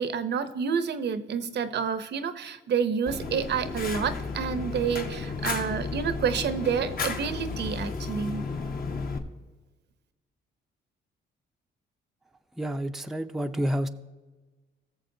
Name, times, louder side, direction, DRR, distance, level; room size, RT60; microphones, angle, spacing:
voice 1, 0.0-8.4, right 6 dB, 60° right, 12 dB, 0.7 m, -29 dB
Fire, 3.1-9.2, left 4 dB, 45° left, 1.1 m, -33 dB
voice 2, 12.6-13.9, equal, ahead, 6 dB, 0.5 m, -29 dB
19.0 x 6.9 x 2.7 m, 1.3 s
cardioid pair, 90°, 20 cm